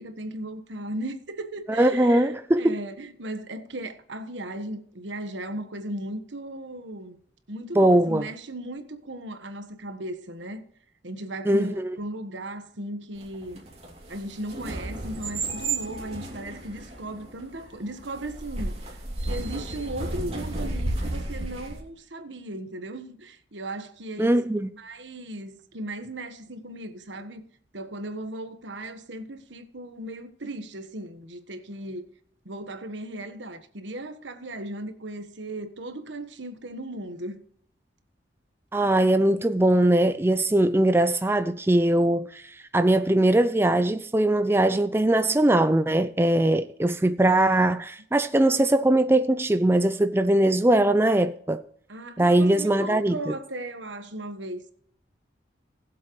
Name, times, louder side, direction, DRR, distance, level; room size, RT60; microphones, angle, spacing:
voice 1, 0.0-7.2 7.5-10.6 11.0-13.6 14.1-18.8 19.2-24.4 24.8-27.4 27.7-32.1 32.4-37.4 51.9-54.6, right 1 dB, 80° right, 1.3 m, -36 dB
voice 2, 1.7-2.8 7.8-8.3 11.5-12.0 24.2-24.7 38.7-51.6 52.2-53.3, right 1 dB, 10° right, 0.4 m, -21 dB
sound 1, 13.2-21.8, right 2 dB, 35° right, 2.9 m, -33 dB
20.0 x 7.6 x 3.1 m
head